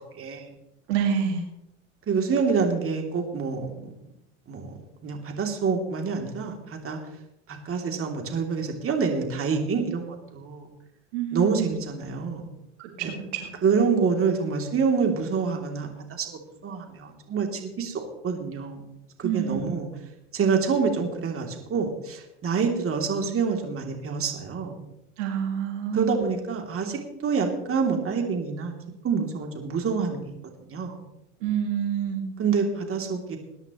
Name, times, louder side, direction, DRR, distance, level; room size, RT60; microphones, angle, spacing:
voice 1, 0.2-0.5 2.1-3.9 4.5-4.7 5.0-7.0 7.5-10.7 11.3-12.5 13.0-13.1 13.6-18.8 19.2-19.9 20.3-24.7 25.9-28.7 29.0-30.2 30.7-30.9 32.4-33.4, right 5 dB, 35° right, 2 dB, 3.1 m, -27 dB
voice 2, 0.9-1.4 11.1-11.7 12.8-13.5 19.2-19.8 25.2-26.3 31.4-32.3, right 8 dB, 75° right, 3 dB, 2.2 m, -27 dB
21.0 x 10.5 x 3.1 m, 0.82 s
hypercardioid pair, 90°, 36 cm